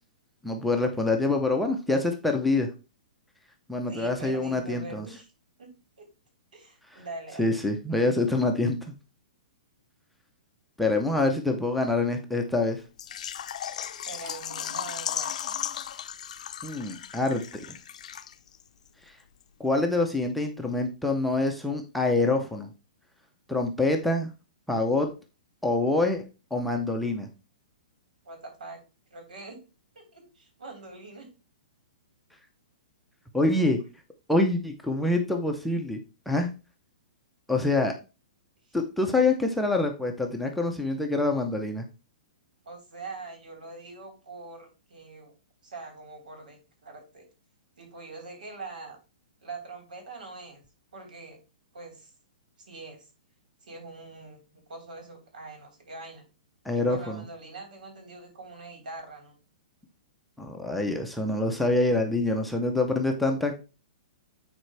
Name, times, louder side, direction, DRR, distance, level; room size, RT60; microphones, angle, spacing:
voice 1, 0.4-2.7 3.7-5.1 6.9-7.0 7.4-8.8 10.8-12.8 16.6-17.4 19.6-22.7 23.5-24.3 24.7-25.1 25.6-26.2 26.5-27.3 33.3-33.8 34.3-36.0 36.3-36.5 37.5-37.9 38.7-41.9 56.6-57.2 60.4-63.6, left 2 dB, ahead, 1 dB, 0.6 m, -26 dB
voice 2, 3.9-5.3 5.6-5.7 6.0-6.1 6.5-7.6 14.1-15.6 16.4-16.6 28.2-28.8 29.1-29.6 30.0-31.3 38.7-38.8 42.6-45.3 45.6-47.3 47.8-49.0 49.4-50.6 50.9-51.4 51.7-52.1 52.6-53.1 53.6-56.2 56.7-59.4, right 3 dB, 85° right, 3 dB, 4.1 m, -43 dB
Water / Liquid, 13.0-18.6 18.9-19.0 19.4-19.5, left 9 dB, 60° left, 0.6 m, -36 dB
9.2 x 4.4 x 3.3 m, 0.30 s
hypercardioid pair, 170°, 4 cm